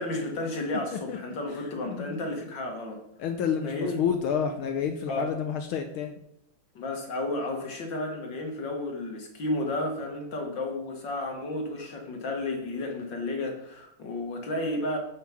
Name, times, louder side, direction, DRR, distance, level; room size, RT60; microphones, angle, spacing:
voice 1, 0.0-3.0 3.6-4.0 5.1-5.3 6.8-15.0, left 2 dB, 55° left, 2 dB, 2.4 m, -32 dB
voice 2, 0.7-1.2 1.5-2.3 3.2-6.2, left 7 dB, 75° left, 5 dB, 1.6 m, -30 dB
7.8 x 7.5 x 5.8 m, 0.76 s
omnidirectional pair, 2.4 m